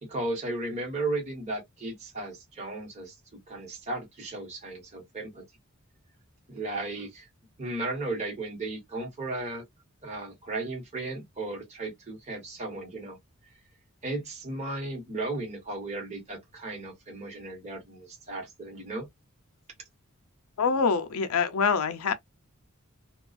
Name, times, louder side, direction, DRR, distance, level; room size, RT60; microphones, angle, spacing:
voice 1, 0.0-3.1 3.5-5.4 6.5-7.3 7.6-9.6 10.0-13.2 14.0-19.1, right 2 dB, 30° right, 1.1 m, -35 dB
voice 2, 20.6-22.1, left 5 dB, 80° left, 0.5 m, -25 dB
2.3 x 2.3 x 2.4 m
head